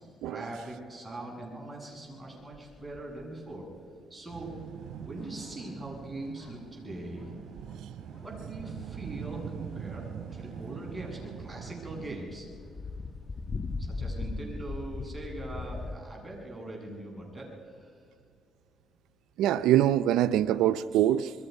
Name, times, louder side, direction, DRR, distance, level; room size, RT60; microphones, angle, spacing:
voice 1, 0.3-3.7 4.1-4.5 5.0-7.3 8.2-10.0 10.3-12.5 13.8-18.0, right 2 dB, 15° right, -2 dB, 7.3 m, -41 dB
sound 1, 2.5-3.2 3.5-3.6 5.2-5.7 6.4-6.5 7.2-7.3 7.7-7.8 8.7-8.8 9.2-9.3 11.2-11.3 11.5-16.0, left 3 dB, 35° left, 1.1 m, -38 dB
sound 2, 4.3-12.2, right 8 dB, 70° right, 2.7 m, -42 dB
voice 2, 19.4-21.3, right 12 dB, 90° right, 12 dB, 0.5 m, -24 dB
27.0 x 22.0 x 5.4 m, 2.3 s
cardioid pair, 90°, 0 cm